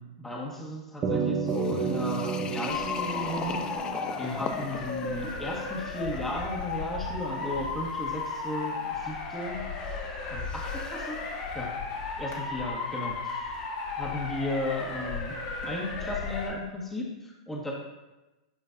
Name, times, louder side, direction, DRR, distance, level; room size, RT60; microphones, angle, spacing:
voice 1, 0.0-3.6 4.2-9.6 10.3-11.2 11.5-11.7 12.2-13.5 14.0-15.3 15.6-17.7, left 1 dB, 10° left, -3 dB, 1.6 m, -35 dB
sound 1, 1.0-5.6, right 5 dB, 30° right, 1.2 m, -32 dB
sound 2, 1.5-11.3, left 7 dB, 25° left, 0.5 m, -43 dB
Motor vehicle (road) / Siren, 2.7-16.5, left 4 dB, 45° left, 1.8 m, -35 dB
9.1 x 5.1 x 2.7 m, 1.1 s
hypercardioid pair, 110°, 3 cm